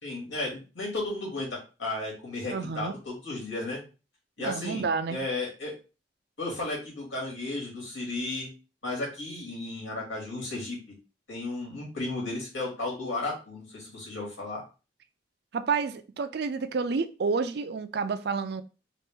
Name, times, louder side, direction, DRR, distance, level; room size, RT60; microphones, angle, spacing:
voice 1, 0.0-3.8 4.4-5.7 6.4-8.5 8.8-10.8 11.3-14.6, left 2 dB, 80° left, 2.3 m, -34 dB
voice 2, 2.5-2.9 4.4-5.2 15.5-18.6, right 5 dB, 60° right, 0.4 m, -29 dB
4.0 x 2.5 x 3.6 m
head